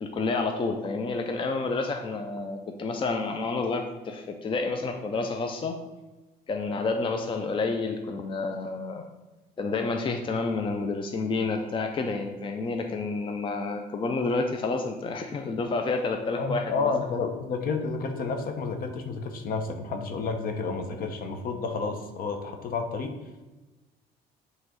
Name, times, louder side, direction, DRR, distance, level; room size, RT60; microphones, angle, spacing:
voice 1, 0.0-5.8 6.5-9.0 9.6-16.9 20.9-21.1, left 3 dB, 30° left, 4 dB, 0.6 m, -29 dB
voice 2, 16.4-23.2, left 4 dB, 60° left, 5 dB, 0.9 m, -30 dB
7.7 x 3.2 x 3.8 m, 1.1 s
cardioid pair, 110°, 17 cm